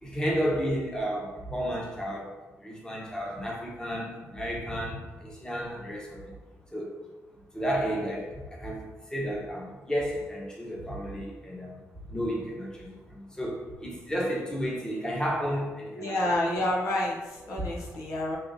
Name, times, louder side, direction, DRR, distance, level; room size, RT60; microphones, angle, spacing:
voice 1, 0.0-2.3 2.6-6.3 6.7-6.9 7.5-8.8 9.1-11.8 12.1-16.3, equal, 15° left, -3 dB, 1.0 m, -32 dB
voice 2, 16.0-18.4, left 1 dB, 85° left, -3 dB, 0.8 m, -29 dB
5.0 x 2.9 x 2.7 m, 1.2 s
cardioid pair, 95°, 5 cm